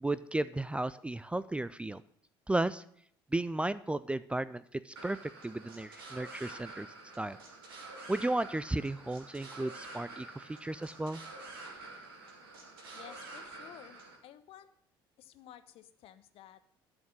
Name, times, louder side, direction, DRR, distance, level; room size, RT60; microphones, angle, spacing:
voice 1, 0.0-2.0 2.5-2.8 3.3-5.2 5.4-6.9 7.2-7.4 8.1-11.2, right 2 dB, 10° right, 16 dB, 0.4 m, -34 dB
sound 1, 5.0-14.2, right 3 dB, 75° right, 2.4 m, -48 dB
voice 2, 12.9-14.7 15.2-16.6, left 11 dB, 50° left, 12 dB, 0.9 m, -53 dB
12.0 x 6.3 x 8.2 m, 0.64 s
figure-of-eight pair, 55°, 12 cm